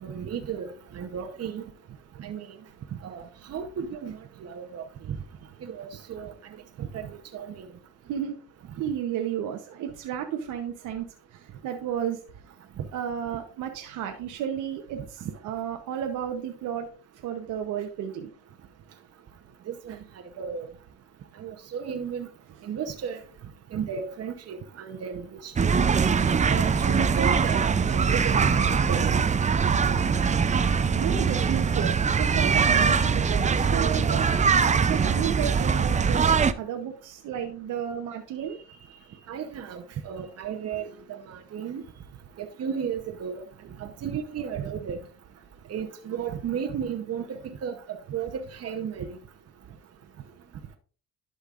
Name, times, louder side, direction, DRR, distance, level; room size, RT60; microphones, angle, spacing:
voice 1, 0.0-0.7 0.9-1.6 2.2-2.6 3.0-5.2 5.6-6.3 6.8-7.6 12.8-12.9 19.7-20.0 20.4-20.7 21.4-22.3 22.6-23.2 23.7-25.7 26.5-27.6 27.9-28.5 28.7-29.2 30.1-30.2 31.6-31.7 39.3-41.8 42.4-43.4 43.8-45.0 45.7-49.2, right 7 dB, 55° right, 0.9 m, -34 dB
voice 2, 8.8-12.2 12.9-16.9 17.2-18.3 31.0-34.3 34.7-36.3 36.6-39.3, right 9 dB, 90° right, 0.9 m, -33 dB
sound 1, 25.6-36.5, right 6 dB, 25° right, 0.5 m, -22 dB
11.5 x 5.3 x 2.5 m
cardioid pair, 90°, 30 cm